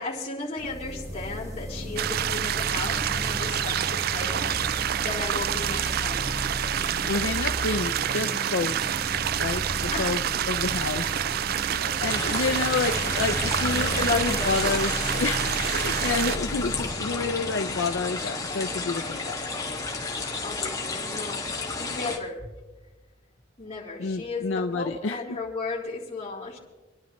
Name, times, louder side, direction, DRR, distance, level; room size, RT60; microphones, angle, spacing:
voice 1, 0.0-6.4 6.9-7.1 9.9-10.2 11.8-12.0 12.7-12.9 13.7-14.6 20.4-22.4 23.6-26.6, left 3 dB, 35° left, -5 dB, 3.5 m, -35 dB
sound 1, 0.6-18.1, equal, 20° right, 4.6 m, -35 dB
sound 2, 2.0-16.4, right 10 dB, 50° right, 0.3 m, -28 dB
voice 2, 7.0-8.7 9.4-10.2 10.5-11.1 11.6-15.4 15.7-19.4 24.0-25.2, left 4 dB, 80° left, 6 dB, 0.6 m, -29 dB
sound 3, 12.1-22.2, left 3 dB, 20° left, 1.7 m, -32 dB
27.0 x 11.5 x 3.1 m, 1.2 s
head